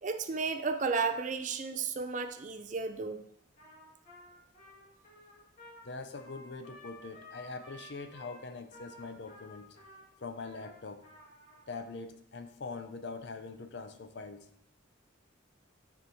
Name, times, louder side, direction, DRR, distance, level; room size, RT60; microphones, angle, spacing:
voice 1, 0.0-3.2, right 4 dB, 35° right, 8 dB, 0.4 m, -33 dB
Trumpet, 3.6-11.8, left 1 dB, 40° left, 2.2 m, -53 dB
voice 2, 5.8-9.8 10.2-11.1 11.7-14.5, left 3 dB, 55° left, 8 dB, 0.5 m, -43 dB
9.5 x 4.5 x 2.8 m, 0.71 s
head